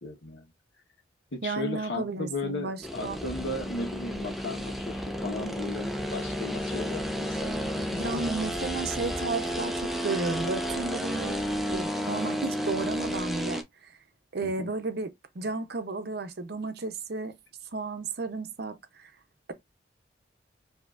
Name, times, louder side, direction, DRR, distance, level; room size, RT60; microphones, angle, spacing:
voice 1, 0.0-0.5 1.3-8.4 14.4-14.7, left 2 dB, 75° left, 1.2 m, -36 dB
voice 2, 1.4-3.2 7.9-11.4 11.7-14.0 14.3-17.4 17.7-19.1, right 3 dB, 60° right, 0.7 m, -33 dB
sound 1, 2.8-13.6, equal, ahead, 0.5 m, -32 dB
4.8 x 2.8 x 2.4 m
head